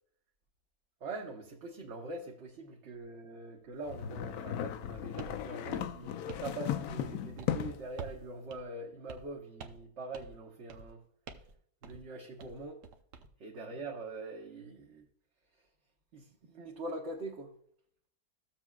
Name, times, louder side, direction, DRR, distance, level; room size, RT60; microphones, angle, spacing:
voice 1, 1.0-11.0 11.8-12.8 13.4-15.0 16.1-17.5, right 2 dB, 50° right, 0 dB, 1.2 m, -43 dB
sound 1, 3.9-7.9, left 10 dB, 75° left, 1.0 m, -36 dB
sound 2, 5.2-5.4 5.7-6.5 6.8-7.1 7.4-7.6 8.0-8.2 8.5-8.6 9.1-9.3 9.6-9.9 10.1-10.4 10.7-10.9 11.3-11.5 11.8-12.0 12.4-13.3, right 5 dB, 90° right, 1.4 m, -47 dB
15.0 x 7.3 x 2.3 m, 0.65 s
omnidirectional pair, 1.7 m